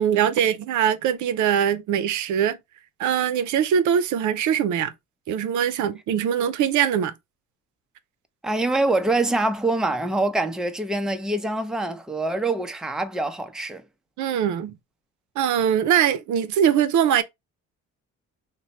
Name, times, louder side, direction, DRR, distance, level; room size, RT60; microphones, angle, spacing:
voice 1, 0.0-2.6 3.0-4.9 5.3-7.1 14.2-14.7 15.4-17.2, right 9 dB, 75° right, 0.6 m, -22 dB
voice 2, 8.4-13.8, right 2 dB, ahead, 0.5 m, -25 dB
3.0 x 2.2 x 4.0 m
cardioid pair, 90°, 30 cm